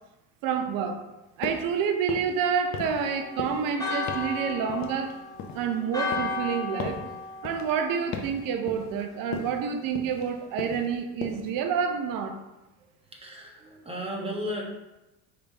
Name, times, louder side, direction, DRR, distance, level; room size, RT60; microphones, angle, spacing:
voice 1, 0.4-1.0 1.4-5.2 5.5-7.0 7.4-12.4, right 6 dB, 55° right, 6 dB, 0.7 m, -28 dB
sound 1, 1.4-1.7 2.0-2.4 2.7-3.1 3.4-3.7 4.1-4.3 4.7-5.7 6.1-6.4 6.8-7.1 7.5-7.7 8.1-8.4 8.7-9.0 9.3-9.6 10.0-10.3 10.6-10.9 11.2-11.5, left 5 dB, 45° left, 0.7 m, -37 dB
Church bell, 2.8-8.5, left 3 dB, 10° left, 1.3 m, -35 dB
voice 2, 13.1-14.6, equal, 15° right, -2 dB, 1.2 m, -34 dB
4.9 x 3.4 x 2.9 m, 0.99 s
hypercardioid pair, 70°, 40 cm